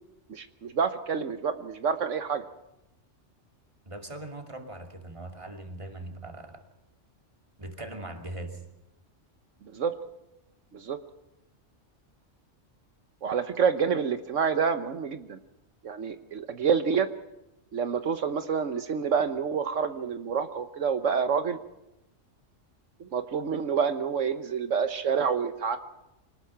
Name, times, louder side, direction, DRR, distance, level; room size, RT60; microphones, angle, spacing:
voice 1, 0.3-2.5 9.7-9.9 10.7-11.0 13.2-15.4 15.8-17.1 17.7-21.6 23.0-25.8, right 6 dB, 75° right, 9 dB, 1.4 m, -28 dB
voice 2, 3.9-6.6 7.6-8.6, right 2 dB, 25° right, 4 dB, 2.8 m, -40 dB
25.5 x 19.5 x 5.8 m, 0.92 s
omnidirectional pair, 1.3 m